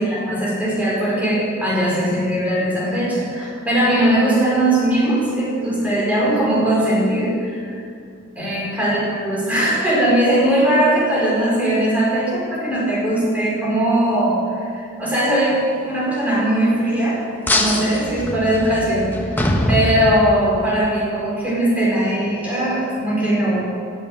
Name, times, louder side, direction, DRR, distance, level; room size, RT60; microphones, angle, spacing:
voice 1, 0.0-7.8 8.3-19.4 19.7-23.7, right 1 dB, 10° right, -7 dB, 4.9 m, -20 dB
sound 1, 17.5-20.7, left 1 dB, 10° left, 1.3 m, -22 dB
17.0 x 8.5 x 8.9 m, 2.3 s
head